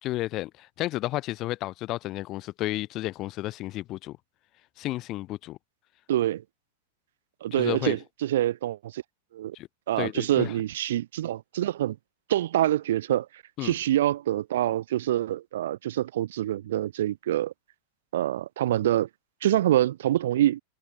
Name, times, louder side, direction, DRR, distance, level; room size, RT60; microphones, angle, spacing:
voice 1, 0.0-4.2 4.8-5.6 7.5-8.0 9.5-9.7 10.0-10.5 13.6-13.7, left 17 dB, 35° left, 3.6 m, -32 dB
voice 2, 6.1-6.4 7.4-9.0 9.3-9.5 9.9-12.0 12.3-13.3 13.6-17.5 18.1-19.1 19.4-20.6, right 13 dB, 60° right, 1.4 m, -26 dB
figure-of-eight pair, 90°, 0 cm